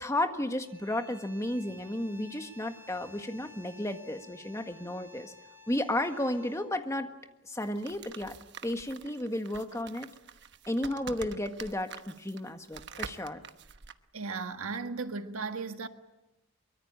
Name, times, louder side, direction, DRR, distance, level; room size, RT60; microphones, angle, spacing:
voice 1, 0.0-5.3 5.7-7.1 7.5-8.4 8.6-10.1 10.7-13.4, left 1 dB, 15° left, 1.6 m, -33 dB
sound 1, 0.6-6.8, left 1 dB, 10° right, 5.4 m, -54 dB
sound 2, 7.6-14.0, right 6 dB, 55° right, 1.1 m, -46 dB
voice 2, 14.1-15.9, right 4 dB, 85° right, 1.6 m, -36 dB
24.0 x 23.5 x 8.9 m
head